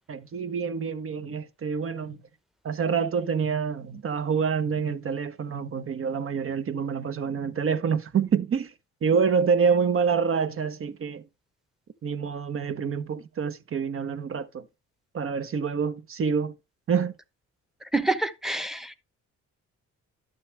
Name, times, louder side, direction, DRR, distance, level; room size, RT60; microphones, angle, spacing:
voice 1, 0.1-2.2 2.6-8.7 9.0-11.2 12.0-14.6 15.1-16.5 16.9-17.1, right 6 dB, 45° right, 1.0 m, -27 dB
voice 2, 17.9-19.0, right 2 dB, ahead, 0.9 m, -27 dB
11.5 x 6.8 x 3.3 m
cardioid pair, 90°, 30 cm